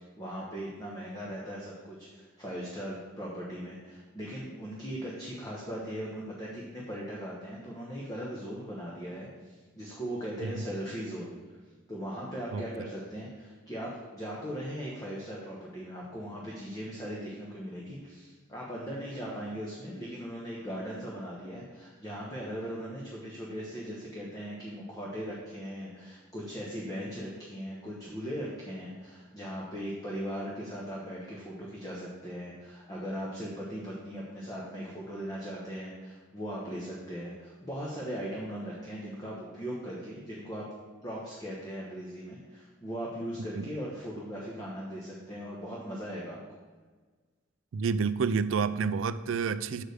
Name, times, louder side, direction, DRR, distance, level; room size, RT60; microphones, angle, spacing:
voice 1, 0.2-11.4 11.9-40.6 41.0-46.4, equal, 20° left, -4 dB, 1.0 m, -39 dB
voice 2, 47.7-49.8, right 5 dB, 70° right, 14 dB, 0.4 m, -29 dB
6.5 x 4.9 x 6.5 m, 1.4 s
head